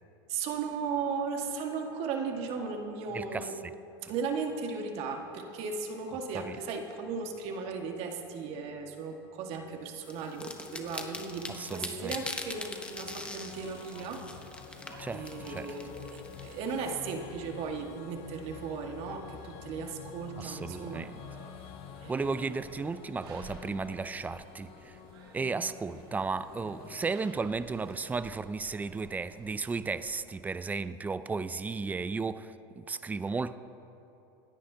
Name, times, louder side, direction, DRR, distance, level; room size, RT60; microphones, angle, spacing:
voice 1, 0.3-3.6 4.0-14.3 15.1-21.0 22.0-22.6, right 5 dB, 55° right, 1.7 m, -36 dB
voice 2, 3.1-3.7 4.0-4.1 6.3-6.6 11.5-12.1 15.0-15.7 20.4-21.1 22.1-25.0 25.3-33.6, right 4 dB, 15° right, 0.4 m, -34 dB
sound 1, 10.1-16.9, left 2 dB, 10° left, 1.1 m, -42 dB
sound 2, 10.6-27.1, left 11 dB, 50° left, 0.6 m, -49 dB
sound 3, 12.4-30.1, right 3 dB, 90° right, 2.7 m, -54 dB
27.0 x 10.0 x 2.8 m
supercardioid pair, 115°, 13 cm